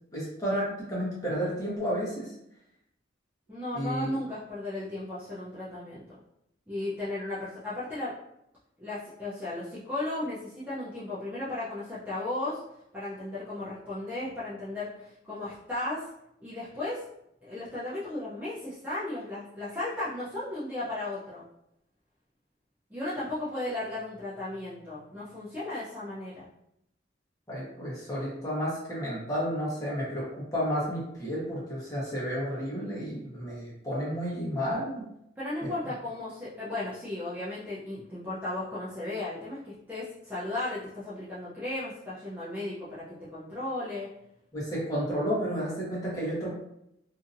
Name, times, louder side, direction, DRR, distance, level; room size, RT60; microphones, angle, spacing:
voice 1, 0.1-2.3 3.7-4.1 27.5-35.1 35.6-35.7 44.5-46.6, equal, 20° left, -7 dB, 1.1 m, -31 dB
voice 2, 3.5-6.0 6.7-8.1 8.8-12.6 12.9-16.1 16.4-17.0 17.4-21.4 22.9-26.5 32.7-32.9 35.4-44.1, left 2 dB, 10° right, -11 dB, 0.6 m, -35 dB
2.7 x 2.6 x 2.5 m, 0.79 s
head